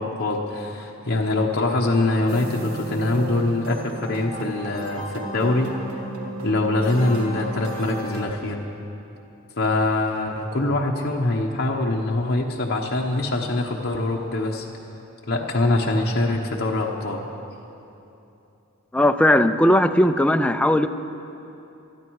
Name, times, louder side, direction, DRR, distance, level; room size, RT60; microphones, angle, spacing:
voice 1, 0.0-5.7 6.4-8.6 9.6-14.7 15.3-17.2, left 2 dB, 50° left, -1 dB, 1.0 m, -23 dB
sound 1, 2.3-8.3, right 2 dB, 75° right, 1.7 m, -34 dB
voice 2, 18.9-20.9, left 1 dB, 5° left, 8 dB, 0.4 m, -18 dB
19.5 x 13.0 x 4.7 m, 2.9 s
head